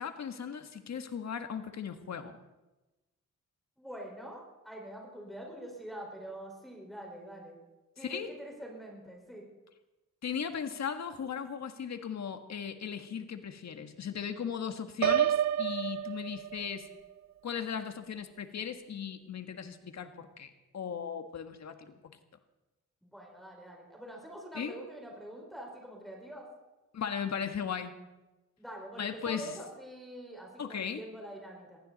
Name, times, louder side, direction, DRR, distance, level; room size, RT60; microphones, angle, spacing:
voice 1, 0.0-2.4 8.0-8.3 10.2-16.9 17.4-22.0 24.5-24.8 26.9-28.0 29.0-29.5 30.6-31.0, left 7 dB, 60° left, 8 dB, 1.7 m, -37 dB
voice 2, 3.8-7.6 8.0-9.4 23.0-26.5 28.6-31.8, right 1 dB, ahead, -1 dB, 4.9 m, -45 dB
Piano, 15.0-16.9, right 11 dB, 65° right, 0.5 m, -29 dB
21.5 x 16.0 x 4.2 m, 1.1 s
cardioid pair, 85°, 31 cm